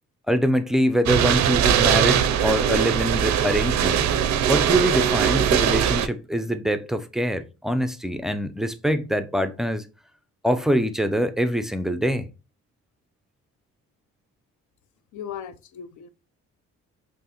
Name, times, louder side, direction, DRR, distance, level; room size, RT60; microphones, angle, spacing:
voice 1, 0.3-4.2 4.5-9.9 10.4-12.3, equal, ahead, 0.3 m, -24 dB
sound 1, 1.1-6.1, right 9 dB, 65° right, 0.5 m, -21 dB
voice 2, 15.1-16.1, left 8 dB, 75° left, 0.6 m, -37 dB
5.4 x 2.1 x 2.9 m
cardioid pair, 90°, 30 cm